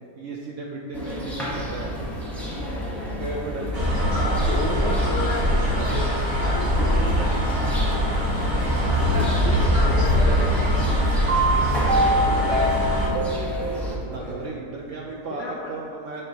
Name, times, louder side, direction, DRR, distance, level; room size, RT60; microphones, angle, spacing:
voice 1, 0.2-2.0 3.2-4.2 10.8-10.9 13.8-16.2, right 3 dB, 90° right, -2 dB, 0.6 m, -35 dB
sound 1, 0.9-14.0, left 1 dB, ahead, 0.8 m, -32 dB
voice 2, 2.3-3.1 4.1-5.0 5.7-6.1 8.2-8.6 8.9-9.4 9.8-10.7 11.4-14.5, right 1 dB, 45° right, -4 dB, 1.2 m, -35 dB
sound 2, 3.7-13.1, equal, 25° right, 1.6 m, -22 dB
voice 3, 4.5-7.4 9.2-10.5 15.3-15.7, left 3 dB, 80° left, -1 dB, 0.6 m, -32 dB
sound 3, 11.3-14.1, right 1 dB, 65° right, 1.1 m, -24 dB
10.0 x 3.6 x 2.8 m, 2.4 s
omnidirectional pair, 1.9 m